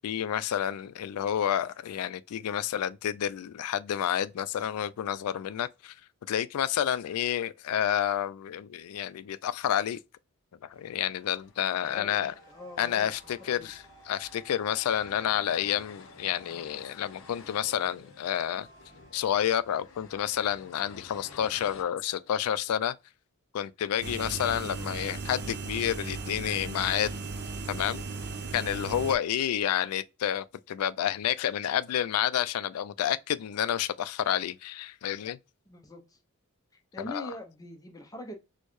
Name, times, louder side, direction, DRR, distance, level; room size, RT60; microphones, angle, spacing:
voice 1, 0.0-5.9 6.3-10.0 10.7-12.3 12.8-18.7 19.1-22.9 23.5-27.1 27.7-28.0 28.5-35.4 37.1-37.3, left 10 dB, 80° left, 0.3 m, -29 dB
sound 1, 10.7-21.8, left 4 dB, 60° left, 0.8 m, -53 dB
voice 2, 11.6-13.7 35.7-36.2 36.9-38.3, left 1 dB, 15° left, 0.6 m, -44 dB
sound 2, 11.9-22.3, right 1 dB, 15° right, 1.0 m, -58 dB
sound 3, 24.0-29.2, right 4 dB, 50° right, 0.6 m, -37 dB
4.4 x 2.1 x 3.1 m
head